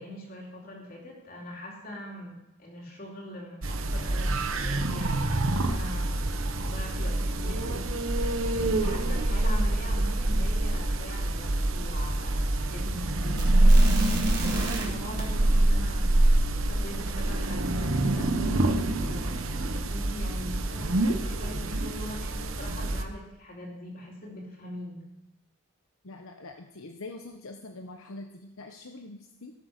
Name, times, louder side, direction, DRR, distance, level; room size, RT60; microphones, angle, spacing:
voice 1, 0.0-6.3 6.6-18.3 19.1-25.0, left 1 dB, 45° left, -2 dB, 3.9 m, -42 dB
sound 1, 3.6-23.0, right 1 dB, 75° right, 1.1 m, -26 dB
sound 2, 5.3-14.8 15.2-15.8, right 4 dB, 50° right, 4.5 m, -45 dB
voice 2, 26.0-29.5, left 2 dB, 80° left, 4 dB, 0.9 m, -44 dB
17.0 x 8.1 x 6.6 m, 0.93 s
head